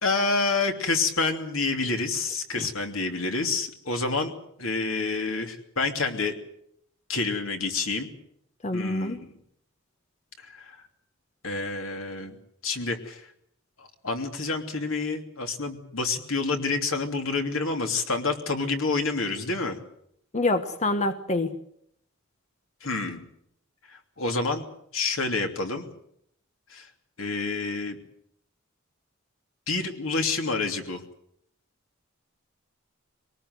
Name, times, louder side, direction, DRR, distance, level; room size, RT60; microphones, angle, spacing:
voice 1, 0.0-4.3 4.6-6.4 7.1-8.1 8.7-9.3 10.5-10.8 11.4-12.4 12.6-13.3 13.8-19.8 22.8-23.2 23.9-24.6 24.9-25.9 26.7-26.9 27.2-28.0 29.7-31.0, left 3 dB, 80° left, 5 dB, 2.9 m, -28 dB
voice 2, 8.6-9.2 20.3-21.5, left 2 dB, 35° left, 8 dB, 1.2 m, -26 dB
23.5 x 19.0 x 8.0 m, 0.71 s
head